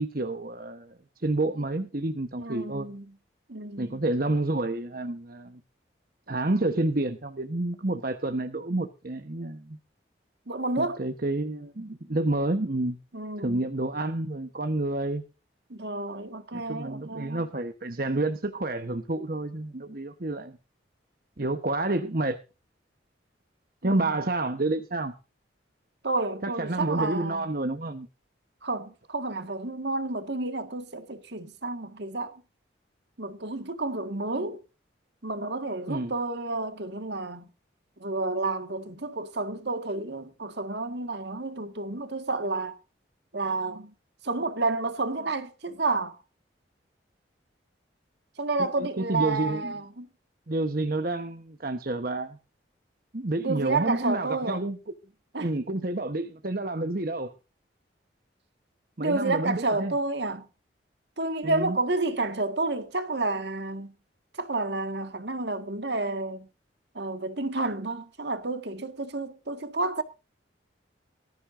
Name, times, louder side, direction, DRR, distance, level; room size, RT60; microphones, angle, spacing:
voice 1, 0.0-2.9 3.8-5.6 6.3-9.8 10.8-13.0 13.4-15.2 16.5-20.5 21.4-22.4 23.8-25.1 26.4-28.1 35.9-36.1 48.6-49.7 50.5-52.4 53.1-54.8 55.4-57.3 59.0-59.9 61.4-61.8, right 2 dB, 50° right, 1.1 m, -29 dB
voice 2, 2.4-3.0 3.5-4.1 10.5-11.0 13.1-13.6 15.7-17.4 23.8-24.0 26.0-27.4 28.6-32.3 33.2-34.6 35.2-37.5 38.0-42.7 43.3-43.9 44.2-46.2 48.4-50.1 53.4-54.6 55.3-55.5 59.0-60.5 61.2-63.9 64.4-66.5 66.9-70.0, right 3 dB, 65° right, 1.8 m, -30 dB
19.5 x 14.0 x 2.6 m
head